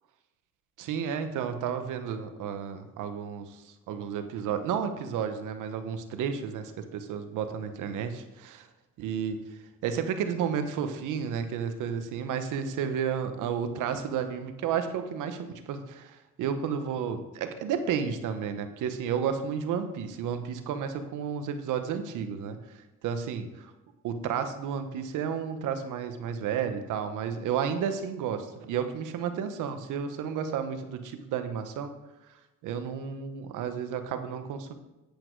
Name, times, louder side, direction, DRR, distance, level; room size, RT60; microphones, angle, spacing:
voice 1, 0.8-8.7 9.0-9.4 9.8-22.6 23.0-23.7 24.0-31.9 32.6-34.7, right 7 dB, 90° right, 8 dB, 1.0 m, -32 dB
8.5 x 8.2 x 4.6 m, 1.0 s
cardioid pair, 90°, 30 cm